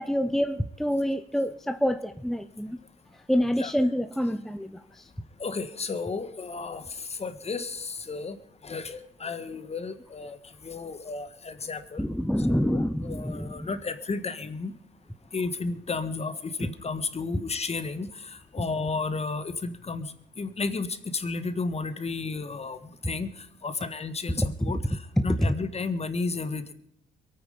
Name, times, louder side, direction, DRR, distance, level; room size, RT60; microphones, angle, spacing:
voice 1, 0.0-2.8 3.3-5.1 12.0-13.7 16.6-16.7 24.4-24.5 25.3-25.5, equal, ahead, 9 dB, 0.7 m, -27 dB
voice 2, 5.4-8.4 8.6-10.4 10.6-12.1 12.5-14.7 15.3-18.1 18.5-20.1 20.4-20.9 21.1-22.8 23.0-23.3 23.6-26.6, left 4 dB, 30° left, 11 dB, 1.6 m, -33 dB
22.5 x 9.1 x 5.2 m, 0.77 s
cardioid pair, 90°, 20 cm